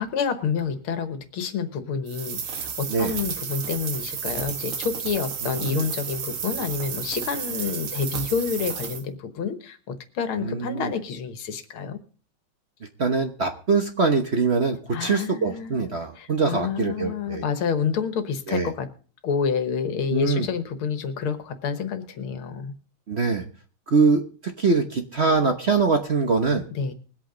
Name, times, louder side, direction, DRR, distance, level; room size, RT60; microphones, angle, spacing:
voice 1, 0.0-12.0 14.9-18.9 19.2-22.7 26.8-26.9, left 6 dB, 85° left, 9 dB, 2.1 m, -28 dB
sound 1, 2.1-9.0, right 7 dB, 85° right, 2.3 m, -32 dB
voice 2, 5.5-5.9 10.4-10.9 13.0-17.4 18.5-18.7 20.1-20.5 23.1-23.4 23.9-24.2 24.6-26.7, right 4 dB, 40° right, 5 dB, 1.0 m, -23 dB
21.0 x 8.4 x 3.9 m, 0.40 s
omnidirectional pair, 2.3 m